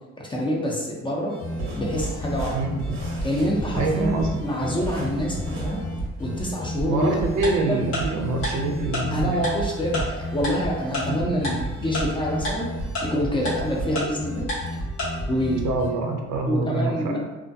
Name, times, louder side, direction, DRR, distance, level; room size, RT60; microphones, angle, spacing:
voice 1, 0.3-1.3 1.8-2.6 3.2-5.8 6.2-7.8 9.1-12.7 13.0-14.5 15.3-15.7 16.5-17.2, equal, 15° left, -3 dB, 0.5 m, -26 dB
sound 1, 1.3-15.9, equal, 65° left, 1.1 m, -32 dB
sound 2, 1.5-6.6, right 1 dB, 45° right, 0.6 m, -37 dB
voice 2, 2.5-3.0 3.8-4.4 6.9-9.4 11.0-11.2 15.6-17.2, right 3 dB, 80° right, 2 dB, 0.5 m, -25 dB
Tick-tock, 7.4-7.5 7.9-8.0 8.4-8.5 8.9-9.0 9.4-9.5 9.9-10.0 10.4-10.5 10.9-11.0 11.4-11.5 11.9-12.0 12.4-12.5 12.9-13.0 13.4-13.5 13.9-14.0 14.5-14.6 15.0-15.1, left 1 dB, 90° left, 1.1 m, -27 dB
2.3 x 2.1 x 2.6 m, 1.1 s
cardioid pair, 90°, 30 cm